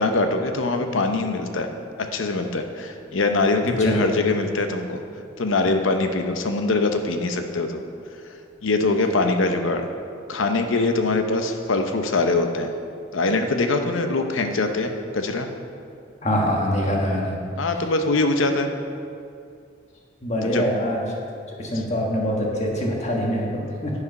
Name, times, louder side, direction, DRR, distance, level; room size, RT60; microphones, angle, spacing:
voice 1, 0.0-1.7 2.0-5.0 5.4-7.8 8.6-9.9 10.3-12.7 13.1-15.5 17.6-18.7 20.4-20.6 21.7-21.8, left 3 dB, 80° left, 6 dB, 0.7 m, -23 dB
voice 2, 3.6-4.0 16.2-17.4 20.2-21.2 21.6-23.9, equal, 35° left, -2 dB, 1.3 m, -24 dB
9.6 x 4.9 x 5.4 m, 2.4 s
head